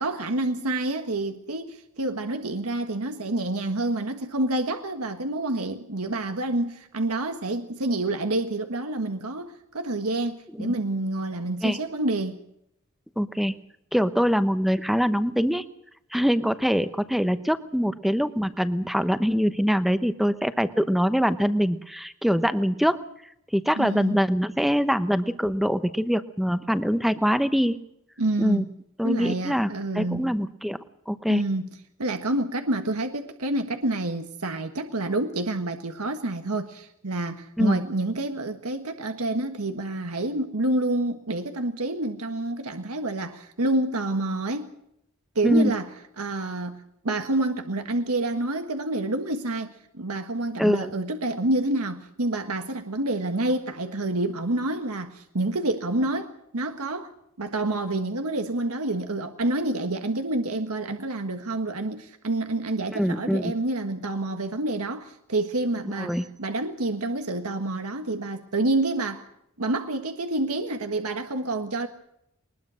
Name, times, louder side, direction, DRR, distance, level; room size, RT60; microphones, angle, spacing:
voice 1, 0.0-12.4 23.8-24.2 28.2-28.7 29.0-30.3 31.3-31.7 32.0-44.7 45.3-45.9 46.2-46.8 47.0-57.1 57.4-69.3 69.6-71.9, right 2 dB, 85° right, 1.6 m, -28 dB
voice 2, 13.2-13.5 13.9-15.6 16.1-23.0 23.5-27.8 28.4-28.6 29.0-30.8 31.1-31.4 37.6-37.8 45.4-45.7 50.6-50.9 62.9-63.5 66.0-66.3, equal, ahead, 0.9 m, -23 dB
22.0 x 20.5 x 6.4 m
head